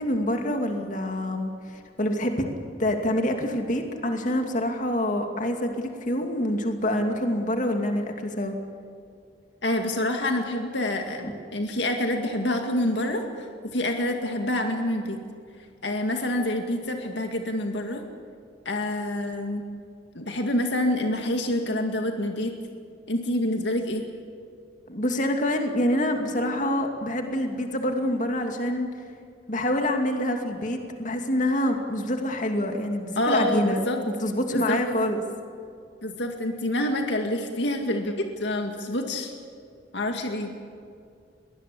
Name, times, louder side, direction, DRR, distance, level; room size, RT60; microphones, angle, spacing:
voice 1, 0.0-1.5 2.0-2.5 2.8-8.5 11.2-11.3 24.9-28.9 29.5-33.8 34.1-35.2, left 1 dB, 40° left, 4 dB, 2.5 m, -26 dB
voice 2, 9.6-15.2 15.8-18.0 18.7-19.6 20.1-22.5 23.1-24.0 33.2-34.0 34.5-34.8 36.0-39.3 39.9-40.5, left 1 dB, 70° left, 4 dB, 2.1 m, -27 dB
23.0 x 19.5 x 8.5 m, 2.4 s
head